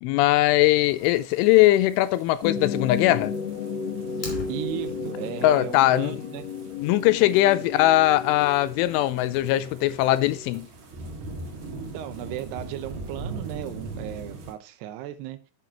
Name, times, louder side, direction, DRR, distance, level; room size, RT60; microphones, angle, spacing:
voice 1, 0.0-3.3 5.4-6.2 6.8-10.7, left 15 dB, 85° left, 3.0 m, -20 dB
sound 1, 0.8-14.5, right 3 dB, 50° right, 2.6 m, -42 dB
sound 2, 2.4-10.6, left 5 dB, 60° left, 1.8 m, -34 dB
Fire, 4.1-5.1, left 4 dB, 45° left, 3.9 m, -38 dB
voice 2, 4.2-6.4 11.9-15.4, right 12 dB, 75° right, 2.6 m, -36 dB
9.8 x 7.7 x 2.9 m
omnidirectional pair, 5.5 m